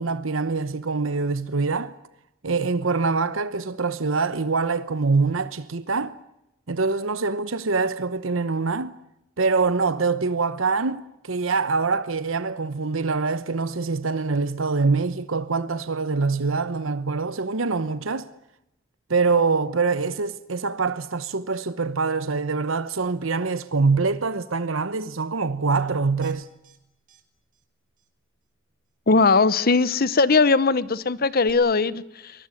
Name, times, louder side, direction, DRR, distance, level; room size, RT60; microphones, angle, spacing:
voice 1, 0.0-1.9 2.4-6.2 6.7-9.0 9.4-18.3 19.1-26.5, right 4 dB, 75° right, 1.0 m, -24 dB
sound 1, 26.2-26.8 27.1-27.2 27.5-27.6 28.0-28.1 31.5-31.6, right 5 dB, 40° right, 3.7 m, -47 dB
voice 2, 29.1-32.3, left 4 dB, 50° left, 1.0 m, -19 dB
23.5 x 21.0 x 9.9 m
head